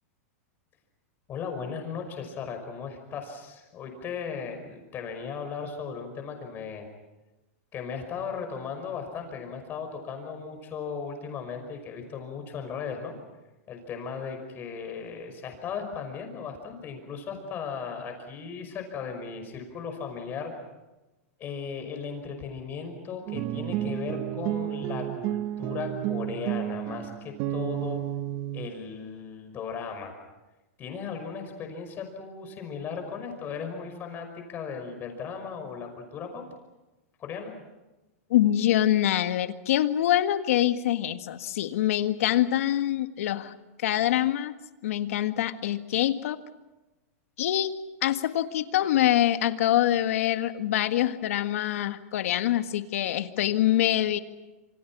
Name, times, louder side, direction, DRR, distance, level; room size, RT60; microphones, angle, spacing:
voice 1, 1.3-6.9 7.7-13.1 13.7-20.5 21.4-28.0 28.5-30.1 30.8-36.4 37.2-37.5, left 6 dB, 25° left, 5 dB, 5.6 m, -37 dB
sound 1, 23.3-28.7, right 13 dB, 40° right, 0.8 m, -31 dB
voice 2, 38.3-43.5 43.8-44.5 44.8-46.4 47.4-47.7 48.0-54.2, left 12 dB, 70° left, 9 dB, 1.7 m, -25 dB
27.5 x 26.0 x 6.1 m, 1.1 s
supercardioid pair, 155°, 8 cm